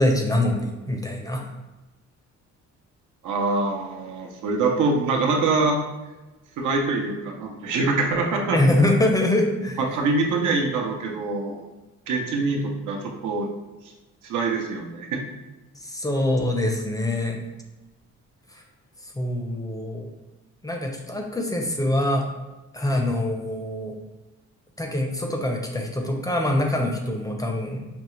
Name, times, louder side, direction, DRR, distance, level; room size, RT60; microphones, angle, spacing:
voice 1, 0.0-1.5 8.5-9.8 15.8-17.4 19.2-20.1 20.6-22.3 22.7-24.0 24.8-27.9, left 1 dB, 10° left, 2 dB, 0.6 m, -24 dB
voice 2, 3.2-5.8 6.6-8.6 9.8-11.6 12.1-13.5 14.2-15.2, right 3 dB, 80° right, 1 dB, 0.8 m, -24 dB
5.3 x 2.3 x 3.1 m, 1.1 s
cardioid pair, 90°, 30 cm